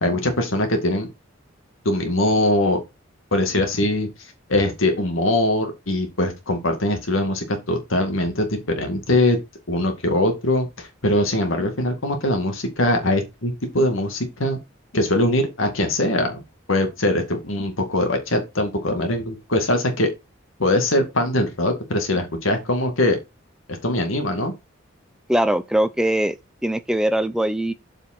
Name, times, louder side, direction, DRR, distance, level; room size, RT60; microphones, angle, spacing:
voice 1, 0.0-1.1 1.9-2.8 3.3-4.1 4.5-9.4 9.7-14.6 14.9-16.4 16.7-20.1 20.6-23.2 23.7-24.5, left 1 dB, 80° left, 2.1 m, -22 dB
voice 2, 25.3-26.4 26.6-27.7, right 1 dB, 5° right, 0.5 m, -21 dB
7.4 x 5.1 x 4.4 m
head